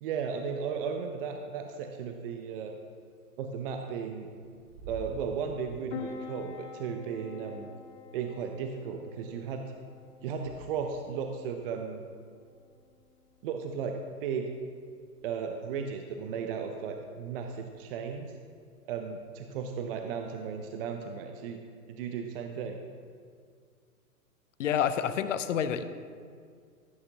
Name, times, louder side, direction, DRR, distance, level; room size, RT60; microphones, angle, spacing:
voice 1, 0.0-2.7 3.4-4.3 4.9-7.7 8.1-9.6 10.2-12.0 13.4-14.5 15.2-18.3 18.9-21.6 21.9-22.8, right 6 dB, 35° right, 4 dB, 0.7 m, -35 dB
Bird / Wind, 2.3-11.0, right 1 dB, 80° right, 2.5 m, -52 dB
Piano, 5.9-20.9, left 6 dB, 35° left, 1.2 m, -50 dB
voice 2, 24.6-25.8, left 8 dB, 55° left, 12 dB, 0.7 m, -28 dB
13.5 x 8.4 x 2.8 m, 2.1 s
hypercardioid pair, 120°, 46 cm